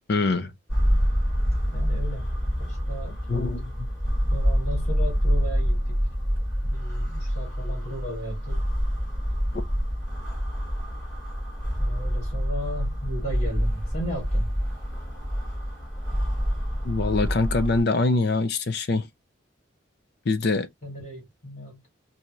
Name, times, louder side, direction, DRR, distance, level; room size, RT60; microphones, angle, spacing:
voice 1, 0.1-0.5 3.3-3.7 16.8-19.1 20.3-20.7, left 3 dB, 50° left, 0.5 m, -24 dB
sound 1, 0.7-17.8, equal, 15° left, 2.4 m, -26 dB
voice 2, 1.7-2.3 2.6-3.2 4.3-6.0 6.6-8.7 11.8-14.5 20.8-21.9, equal, 35° left, 2.6 m, -36 dB
4.4 x 2.7 x 2.3 m
head